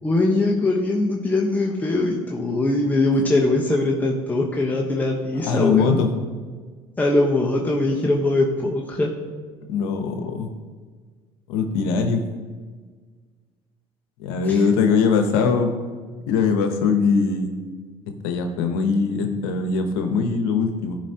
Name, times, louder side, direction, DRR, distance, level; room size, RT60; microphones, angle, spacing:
voice 1, 0.0-6.0 7.0-9.1 14.5-14.6, left 2 dB, 15° left, -2 dB, 1.0 m, -21 dB
voice 2, 5.4-6.1 9.7-10.5 11.5-12.3 14.2-15.8 16.3-17.5 18.2-21.0, left 5 dB, 90° left, 5 dB, 0.9 m, -21 dB
13.5 x 5.1 x 2.9 m, 1.5 s
supercardioid pair, 85°, 13 cm